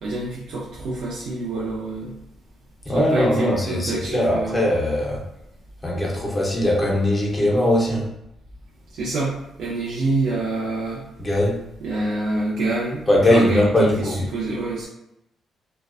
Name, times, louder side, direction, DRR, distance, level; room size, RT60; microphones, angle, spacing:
voice 1, 0.0-2.1 2.9-4.7 8.9-11.0 11.8-13.0 13.3-14.9, right 2 dB, 65° right, -7 dB, 0.5 m, -26 dB
voice 2, 2.9-5.2 5.8-8.1 11.2-11.6 13.1-14.2, left 1 dB, 10° left, -3 dB, 0.5 m, -20 dB
2.5 x 2.1 x 2.3 m, 0.84 s
cardioid pair, 160°, 0 cm